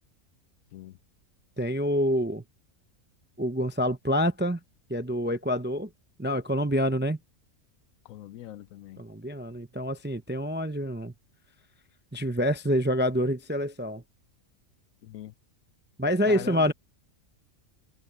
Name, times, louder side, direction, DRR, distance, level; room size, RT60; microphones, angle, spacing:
voice 1, 1.6-2.4 3.4-4.6 4.9-5.9 6.2-7.2 9.0-11.1 12.1-14.0 16.0-16.7, equal, 15° right, 0.4 m, -27 dB
voice 2, 8.0-9.0 15.0-15.3 16.3-16.7, left 13 dB, 75° left, 1.0 m, -41 dB
omnidirectional pair, 1.5 m